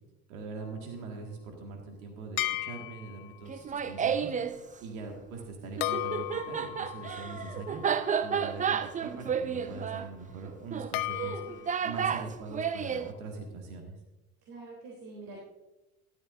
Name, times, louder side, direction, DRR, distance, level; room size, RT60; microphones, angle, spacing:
voice 1, 0.3-4.3 4.8-14.0, right 4 dB, 70° right, 2 dB, 2.1 m, -42 dB
sound 1, 2.4-3.4 5.8-8.9 10.9-11.9, left 16 dB, 60° left, 0.7 m, -36 dB
Laughter, 3.5-4.5 5.8-13.1, right 7 dB, 20° right, 0.5 m, -31 dB
voice 2, 14.5-15.4, right 2 dB, 55° right, -3 dB, 3.5 m, -46 dB
13.0 x 12.5 x 2.7 m, 1.0 s
hypercardioid pair, 70°, 43 cm